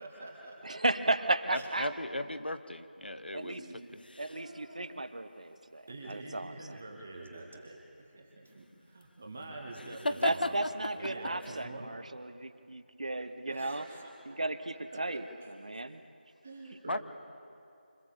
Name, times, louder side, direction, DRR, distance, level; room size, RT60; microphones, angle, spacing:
voice 1, 0.0-0.8 1.5-1.7 3.4-3.9 4.3-5.0 5.9-11.9 13.5-14.4 14.9-15.0 15.4-15.5 16.4-17.0, right 2 dB, 5° right, 0 dB, 0.4 m, -46 dB
voice 2, 0.6-1.9 3.3-3.6 4.2-6.8 10.2-13.8 14.3-15.2 15.6-16.0, right 2 dB, 45° right, 11 dB, 0.9 m, -34 dB
voice 3, 1.5-3.6 3.9-4.0 16.9-17.0, left 1 dB, 90° left, 11 dB, 1.2 m, -37 dB
sound 1, 3.7-4.7 8.5-11.6, left 1 dB, 65° left, 0.7 m, -37 dB
25.0 x 14.5 x 7.1 m, 2.6 s
figure-of-eight pair, 175°, 5 cm